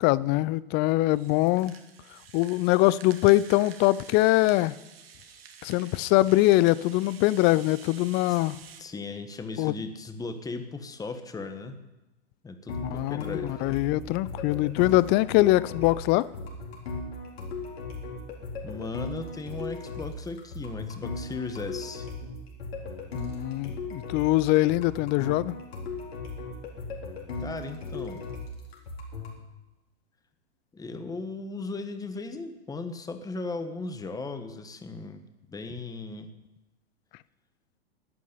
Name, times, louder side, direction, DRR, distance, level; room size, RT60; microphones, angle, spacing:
voice 1, 0.0-1.8 2.3-4.7 5.6-8.6 9.6-9.7 12.8-16.3 23.1-25.6, left 18 dB, 35° left, 0.5 m, -23 dB
Rattle (instrument), 1.1-8.8, right 7 dB, 70° right, 2.1 m, -49 dB
voice 2, 8.8-11.8 12.4-13.6 18.6-22.1 27.4-28.2 30.7-35.2 35.5-36.3, left 3 dB, 10° left, 1.4 m, -37 dB
sound 1, 12.7-29.4, left 3 dB, 70° left, 4.2 m, -37 dB
12.5 x 9.2 x 10.0 m
figure-of-eight pair, 100°, 32 cm